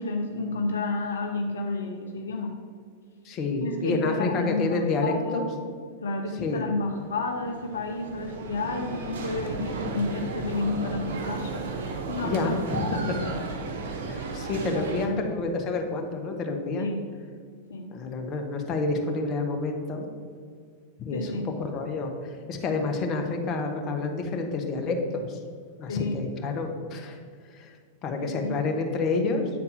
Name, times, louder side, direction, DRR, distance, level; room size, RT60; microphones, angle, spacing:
voice 1, 0.0-2.5 3.6-5.6 6.0-11.7 12.1-12.6 12.9-13.4 14.7-15.2 16.8-17.0 17.7-17.9 21.1-21.5 25.9-26.2 28.2-28.6, left 3 dB, 80° left, 3 dB, 0.7 m, -31 dB
voice 2, 3.2-5.4 6.4-6.6 12.2-13.2 14.0-16.9 17.9-20.1 21.0-25.4 25.8-27.2 27.5-27.8 28.0-29.5, left 3 dB, 35° left, 3 dB, 1.2 m, -29 dB
sound 1, 6.9-15.1, right 4 dB, 65° right, 1.0 m, -34 dB
8.5 x 4.2 x 5.7 m, 2.1 s
hypercardioid pair, 95°, 0 cm